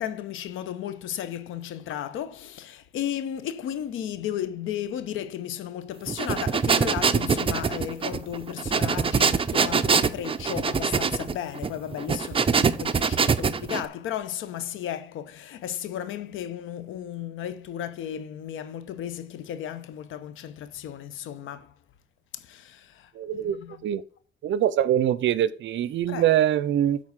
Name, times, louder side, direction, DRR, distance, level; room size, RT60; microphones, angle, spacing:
voice 1, 0.0-21.7 22.3-23.8 26.1-26.4, left 10 dB, 85° left, 0.9 m, -34 dB
sound 1, 6.1-13.8, right 5 dB, 25° right, 0.6 m, -24 dB
voice 2, 23.1-24.0 24.4-27.0, right 11 dB, 70° right, 0.6 m, -24 dB
8.4 x 4.0 x 6.5 m
cardioid pair, 90°, 20 cm